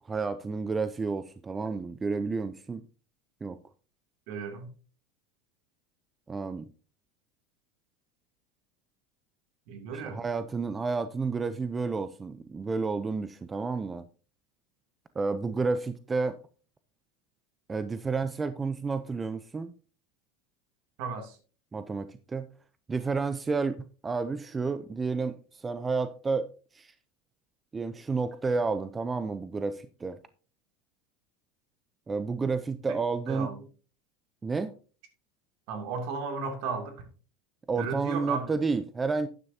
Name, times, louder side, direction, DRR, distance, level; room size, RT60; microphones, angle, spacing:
voice 1, 0.0-2.8 3.4-3.6 6.3-6.7 9.9-14.0 15.2-16.4 17.7-19.7 21.7-22.5 22.9-26.9 27.7-30.2 32.1-33.5 34.4-34.8 37.7-39.3, right 4 dB, 15° right, 0.6 m, -31 dB
voice 2, 4.3-4.7 9.7-10.2 11.5-11.6 21.0-21.4 33.3-33.7 35.7-37.0 37.8-38.5, right 5 dB, 60° right, 2.7 m, -34 dB
12.0 x 9.8 x 2.8 m
supercardioid pair, 135°, 0 cm